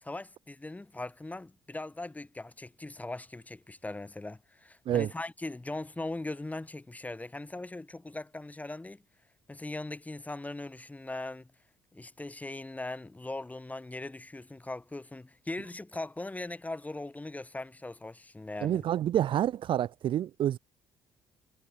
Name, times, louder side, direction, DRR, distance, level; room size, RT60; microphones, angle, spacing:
voice 1, 0.0-9.0 9.5-11.5 11.9-18.9, left 2 dB, 15° left, 1.8 m, -40 dB
voice 2, 18.6-20.6, right 11 dB, 50° right, 0.9 m, -28 dB
figure-of-eight pair, 50°, 11 cm